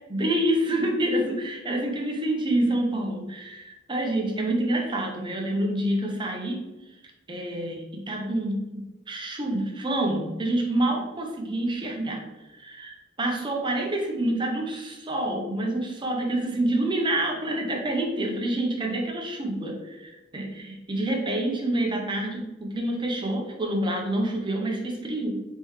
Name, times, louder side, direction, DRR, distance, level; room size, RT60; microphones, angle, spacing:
voice 1, 0.1-6.7 7.3-25.4, right 1 dB, 25° right, 1 dB, 0.7 m, -27 dB
4.2 x 3.8 x 3.1 m, 1.0 s
head